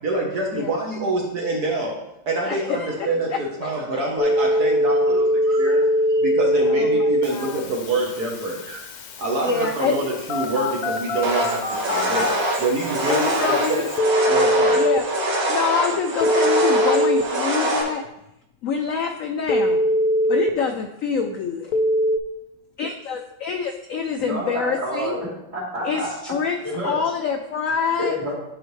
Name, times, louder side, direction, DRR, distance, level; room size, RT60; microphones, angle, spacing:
voice 1, 0.0-1.9 2.3-8.9 9.2-12.3 12.6-13.9 14.3-14.8, right 2 dB, 60° right, -1 dB, 1.6 m, -26 dB
voice 2, 2.4-4.0 6.6-7.7 9.4-10.1 13.1-13.9 14.8-15.1 15.5-18.0 18.6-19.8 20.3-21.7 22.8-25.2 25.8-26.6 26.8-28.2, left 6 dB, 80° left, 5 dB, 0.7 m, -26 dB
Telephone, 4.2-15.0 16.2-17.2 19.5-20.5 21.7-22.2, equal, 60° left, 1.1 m, -22 dB
sound 1, 11.2-17.8, right 1 dB, 80° right, 1.9 m, -24 dB
voice 3, 24.2-26.3 26.6-27.0 28.0-28.3, equal, 40° right, -7 dB, 3.0 m, -28 dB
10.0 x 4.9 x 3.2 m, 0.85 s
omnidirectional pair, 2.0 m